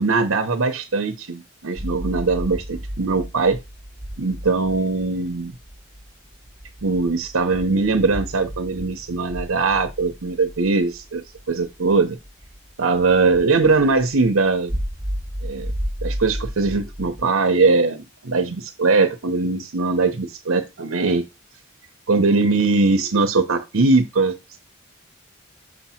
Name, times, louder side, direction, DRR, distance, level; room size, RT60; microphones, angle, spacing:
voice 1, 0.0-3.6 4.2-5.5 6.8-12.2 12.8-14.8 15.4-15.7 16.0-21.3 22.1-24.6, right 3 dB, 80° right, 0.9 m, -21 dB
sound 1, 1.8-17.2, equal, 15° right, 1.1 m, -33 dB
6.7 x 2.9 x 5.7 m
head